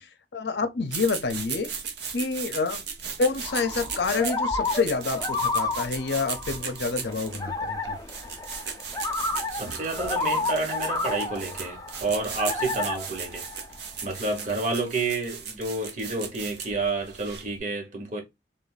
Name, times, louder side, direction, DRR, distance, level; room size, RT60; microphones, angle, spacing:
voice 1, 0.0-1.7 2.1-2.8 3.2-8.0, left 4 dB, 75° left, 0.6 m, -28 dB
sound 1, 0.9-17.6, right 6 dB, 75° right, 0.9 m, -37 dB
sound 2, 3.4-14.3, left 3 dB, 20° left, 0.5 m, -31 dB
voice 2, 9.5-13.5 14.0-18.2, right 3 dB, 45° right, 1.3 m, -29 dB
3.7 x 2.6 x 3.9 m
head